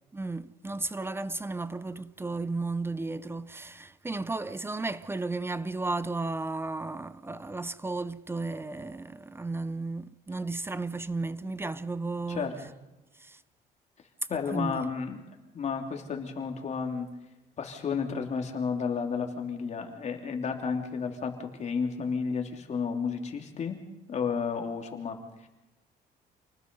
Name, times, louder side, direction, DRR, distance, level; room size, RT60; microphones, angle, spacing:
voice 1, 0.1-12.5 13.2-13.4 14.3-14.9, right 3 dB, 15° right, 0.7 m, -34 dB
voice 2, 14.3-17.1 17.6-23.8 24.1-25.5, left 5 dB, 40° left, 3.1 m, -32 dB
28.5 x 19.5 x 5.5 m
cardioid pair, 110°, 17 cm